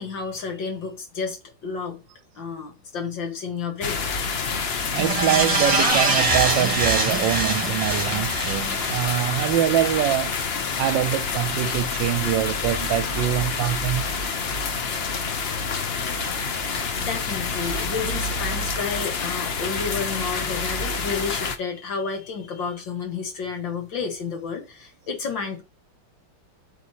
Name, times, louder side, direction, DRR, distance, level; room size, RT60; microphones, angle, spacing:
voice 1, 0.0-2.0 2.4-4.3 17.0-25.6, left 5 dB, 70° left, 2.4 m, -31 dB
sound 1, 3.8-21.6, left 4 dB, 55° left, 0.7 m, -27 dB
voice 2, 4.9-10.4 10.8-14.0, right 12 dB, 75° right, 1.2 m, -24 dB
sound 2, 5.0-9.5 9.9-10.0, right 2 dB, 20° right, 1.5 m, -24 dB
8.3 x 6.4 x 2.9 m
omnidirectional pair, 2.2 m